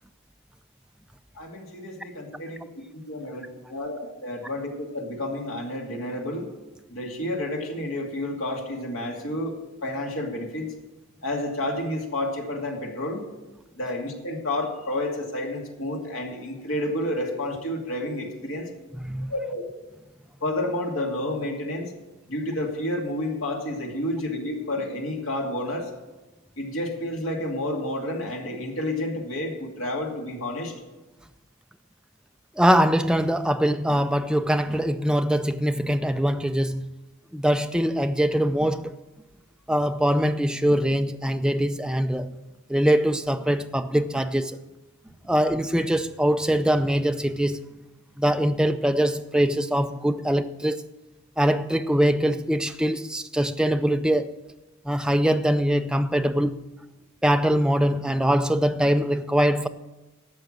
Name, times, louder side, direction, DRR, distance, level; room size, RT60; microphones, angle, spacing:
voice 1, 1.4-2.7 2.9-6.5 6.9-10.7 11.2-13.2 13.8-18.7 19.3-19.6 20.4-21.9 22.3-25.9 26.6-30.7, left 1 dB, 65° left, 2.4 m, -30 dB
voice 2, 32.6-36.8 37.3-38.9 39.7-42.3 42.7-44.6 45.3-47.6 48.2-50.8 51.4-54.3 54.9-56.6 57.2-59.7, equal, 5° right, 0.4 m, -23 dB
12.0 x 7.0 x 7.6 m
head